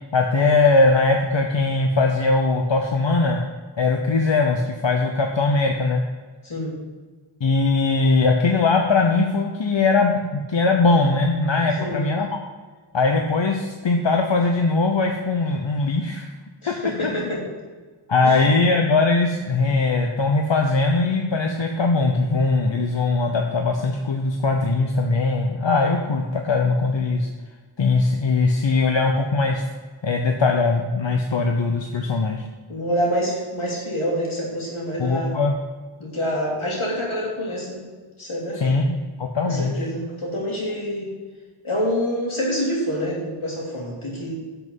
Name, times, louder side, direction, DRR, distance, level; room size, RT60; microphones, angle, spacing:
voice 1, 0.1-3.4 3.8-6.0 7.4-12.4 12.9-16.2 16.7-16.8 17.0-17.1 18.1-27.3 27.8-29.6 30.0-32.4 35.0-35.6 38.6-39.9, left 3 dB, 65° left, 2 dB, 1.0 m, -20 dB
voice 2, 6.4-6.8 11.8-12.1 16.6-17.4 18.2-18.4 32.7-35.4 36.0-37.8 38.2-38.8 39.4-41.1 41.6-44.3, equal, 85° left, -4 dB, 3.3 m, -26 dB
11.0 x 6.0 x 5.5 m, 1.4 s
wide cardioid pair, 55°, 48 cm